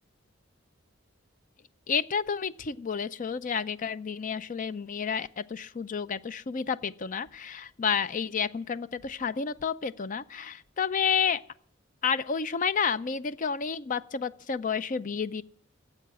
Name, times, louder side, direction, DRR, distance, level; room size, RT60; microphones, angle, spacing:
voice 1, 1.9-11.4 12.0-15.4, left 6 dB, 40° left, 0.5 m, -30 dB
13.5 x 7.8 x 9.5 m
head